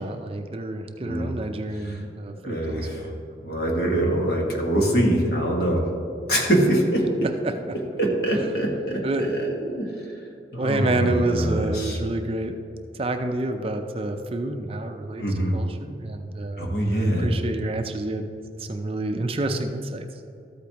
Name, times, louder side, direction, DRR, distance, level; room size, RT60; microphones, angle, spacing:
voice 1, 0.0-3.2 7.4-7.7 9.0-9.4 10.6-12.5 12.9-15.2 15.5-18.3 18.6-20.1, right 2 dB, 30° right, 6 dB, 0.5 m, -28 dB
voice 2, 2.4-3.0 3.4-5.8 6.3-7.1 8.0-9.9 10.5-12.0 15.2-15.6 16.6-17.3, right 1 dB, 60° left, -1 dB, 1.7 m, -24 dB
13.5 x 8.4 x 3.0 m, 2.7 s
head